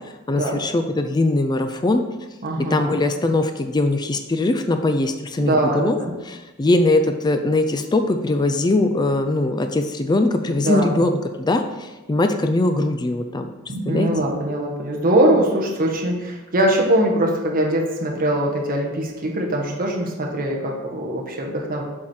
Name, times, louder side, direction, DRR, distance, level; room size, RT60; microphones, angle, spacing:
voice 1, 0.3-2.0 2.7-6.0 6.3-13.5 13.9-14.1, left 2 dB, 20° left, 7 dB, 0.4 m, -21 dB
voice 2, 2.4-2.9 5.4-6.1 10.6-10.9 13.7-21.8, right 1 dB, 40° right, 0 dB, 1.2 m, -22 dB
7.2 x 4.4 x 4.8 m, 1.1 s
head